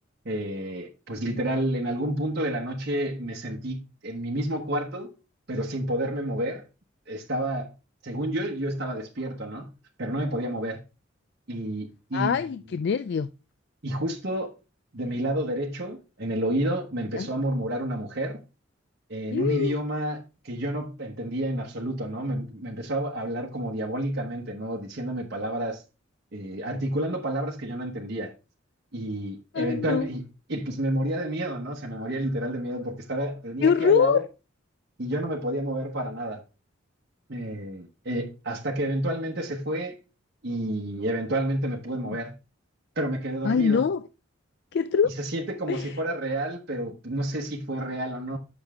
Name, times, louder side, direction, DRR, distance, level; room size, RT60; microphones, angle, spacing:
voice 1, 0.2-5.1 5.5-6.6 7.1-7.7 8.0-9.7 10.0-10.8 11.5-12.4 13.8-14.5 14.9-18.4 19.1-25.8 26.3-28.3 28.9-30.2 30.5-34.2 35.0-36.4 37.3-40.0 40.4-42.3 43.0-43.8 45.2-48.4, right 1 dB, 55° right, 1.1 m, -30 dB
voice 2, 12.1-13.3 17.1-17.3 19.3-19.8 29.5-30.1 33.6-34.2 42.1-42.2 43.4-44.1 44.7-45.1 45.7-46.0, left 6 dB, 55° left, 0.3 m, -24 dB
8.0 x 6.1 x 3.5 m
head